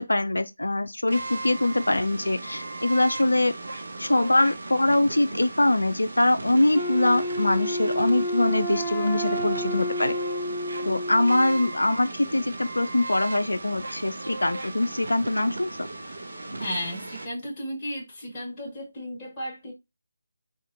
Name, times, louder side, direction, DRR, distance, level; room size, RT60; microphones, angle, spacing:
voice 1, 0.0-3.5 4.0-10.2 10.9-15.8, left 1 dB, 75° left, 0.3 m, -23 dB
sound 1, 1.1-17.3, right 2 dB, 65° right, 0.6 m, -37 dB
Wind instrument woodwind instrument, 6.7-11.7, equal, ahead, 0.8 m, -30 dB
voice 2, 16.6-19.7, equal, 25° left, 1.2 m, -34 dB
4.0 x 2.5 x 2.5 m
figure-of-eight pair, 155°, 0 cm